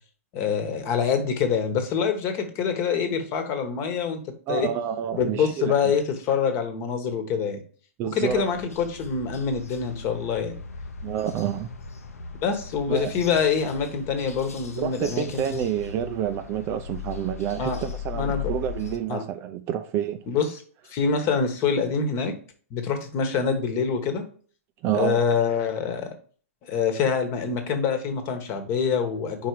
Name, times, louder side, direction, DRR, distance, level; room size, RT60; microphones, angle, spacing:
voice 1, 0.3-4.2 4.5-4.7 5.1-7.6 8.1-10.5 12.4-15.4 17.6-17.8 18.1-18.5 19.1-19.2 20.3-20.5 20.9-22.3 22.7-24.2 24.9-26.1 26.7-29.5, left 6 dB, 35° left, 1.3 m, -25 dB
voice 2, 4.5-5.9 8.0-8.4 11.0-11.7 12.9-13.1 14.7-20.2 24.8-25.2, right 10 dB, 35° right, 0.5 m, -28 dB
sound 1, 8.3-19.0, left 6 dB, 85° left, 0.9 m, -38 dB
4.6 x 4.5 x 4.7 m
hypercardioid pair, 120°, 8 cm